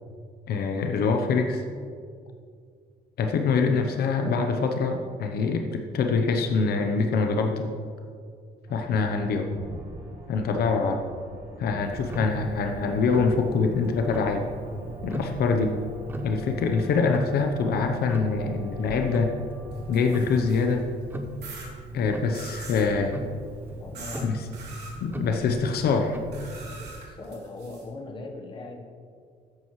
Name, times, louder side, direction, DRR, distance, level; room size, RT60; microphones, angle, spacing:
voice 1, 0.5-1.6 3.2-7.7 8.7-9.5 10.3-11.0 11.6-14.5 15.0-15.7 16.2-19.3 19.9-20.9 21.9-23.1 24.2-24.4 25.0-26.2, left 4 dB, 65° left, 4 dB, 0.8 m, -24 dB
sound 1, 8.7-20.8, right 1 dB, 55° right, 1.9 m, -44 dB
Tick-tock, 11.8-27.0, right 2 dB, 10° right, 0.8 m, -39 dB
sound 2, 19.7-20.8 21.4-21.7 22.3-22.9 23.9-24.2 24.5-24.9 26.3-27.8, right 3 dB, 75° right, 3.1 m, -43 dB
voice 2, 23.8-24.3 26.6-28.8, left 2 dB, 30° left, 2 dB, 1.1 m, -40 dB
13.0 x 10.0 x 3.2 m, 2.2 s
cardioid pair, 160°, 18 cm